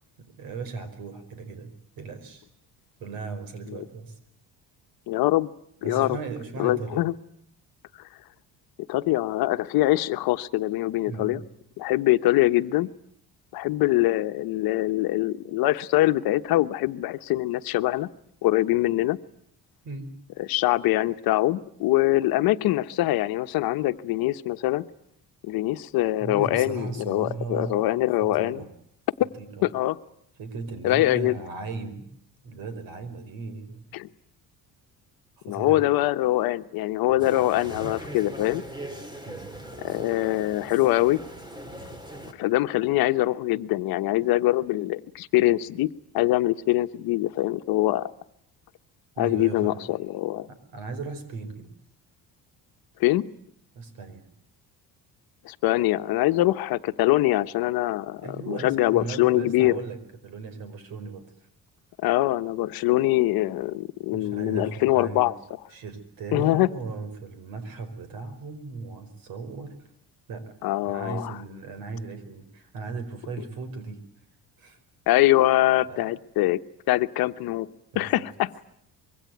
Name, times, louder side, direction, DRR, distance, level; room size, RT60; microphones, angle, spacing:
voice 1, 0.2-2.5 3.0-4.2 5.8-7.0 11.1-11.4 19.8-20.1 26.2-27.9 28.2-28.7 29.4-29.6 30.4-32.1 32.4-33.8 35.4-35.8 37.1-37.4 39.2-39.5 49.2-49.9 50.5-51.7 53.7-54.3 58.2-60.0 60.2-61.3 64.1-65.3 65.7-69.8 70.3-74.0 74.6-74.8 75.9-76.1 77.9-78.3, right 4 dB, 70° right, 5.1 m, -37 dB
voice 2, 5.1-5.5 5.8-6.2 6.6-7.1 8.9-11.4 11.8-12.9 13.5-18.1 18.4-19.2 20.4-24.8 25.4-28.6 29.2-29.3 29.6-30.0 30.8-31.4 33.9-34.1 35.4-38.6 39.8-41.2 42.4-45.9 46.1-48.1 49.2-50.5 53.0-53.3 55.4-59.8 62.0-65.3 66.3-66.7 70.6-71.3 75.1-76.6 76.9-77.7 77.9-78.5, left 16 dB, 75° left, 1.1 m, -23 dB
sound 1, 37.2-42.3, right 1 dB, 10° right, 2.6 m, -40 dB
25.5 x 23.0 x 9.3 m
cardioid pair, 145°, 36 cm